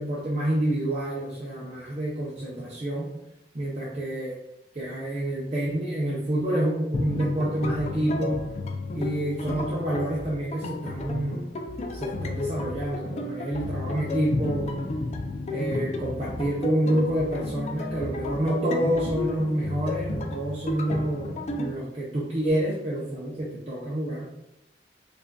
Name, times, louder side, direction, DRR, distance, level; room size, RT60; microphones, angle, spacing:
voice 1, 0.0-3.1 3.5-4.3 4.7-8.5 8.9-11.4 11.9-14.7 15.5-24.3, right 1 dB, 35° right, -6 dB, 0.6 m, -28 dB
sound 1, 6.9-21.7, left 2 dB, 40° left, 0.3 m, -32 dB
4.7 x 2.5 x 2.2 m, 0.89 s
head